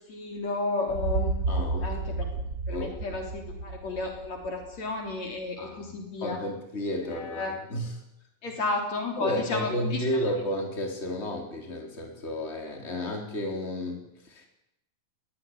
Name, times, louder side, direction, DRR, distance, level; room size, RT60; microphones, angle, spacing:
voice 1, 0.1-2.3 2.7-6.4 7.1-7.6 8.4-10.0, left 3 dB, 55° left, 3 dB, 4.5 m, -32 dB
sound 1, 0.9-4.8, right 3 dB, 55° right, 0.9 m, -31 dB
voice 2, 1.5-2.1 2.7-3.2 5.6-5.8 6.2-7.9 9.2-14.5, left 1 dB, 20° left, 3 dB, 4.3 m, -32 dB
21.0 x 17.5 x 9.9 m, 0.80 s
omnidirectional pair, 3.9 m